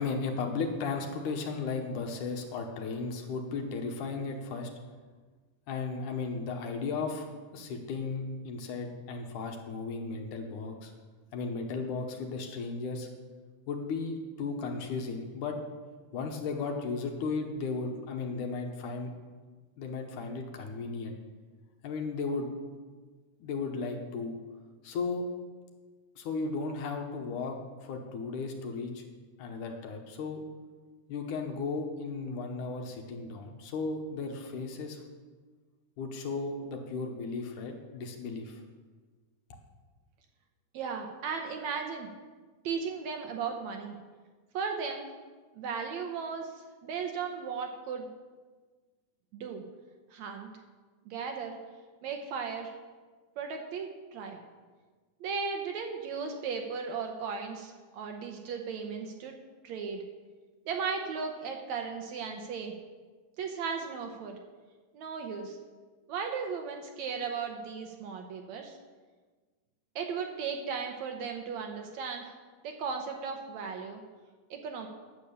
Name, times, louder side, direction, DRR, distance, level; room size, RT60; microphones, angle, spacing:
voice 1, 0.0-4.7 5.7-7.3 7.5-10.9 11.3-13.1 13.7-15.6 16.1-19.1 19.8-21.2 21.8-22.5 23.4-24.4 24.8-25.2 26.2-29.0 29.4-30.4 31.1-35.0 36.0-38.6, left 4 dB, 75° left, 3 dB, 2.6 m, -35 dB
voice 2, 40.7-42.1 42.6-44.0 44.5-45.1 45.5-46.5 46.8-48.1 49.3-49.6 50.1-50.5 51.1-51.6 52.0-52.7 53.4-54.4 55.2-59.3 59.6-60.0 60.7-62.7 63.4-64.4 64.9-65.6 66.1-68.8 70.0-72.3 72.6-74.0 74.5-74.9, right 5 dB, 70° right, 3 dB, 2.0 m, -36 dB
9.6 x 8.4 x 6.9 m, 1.4 s
omnidirectional pair, 3.7 m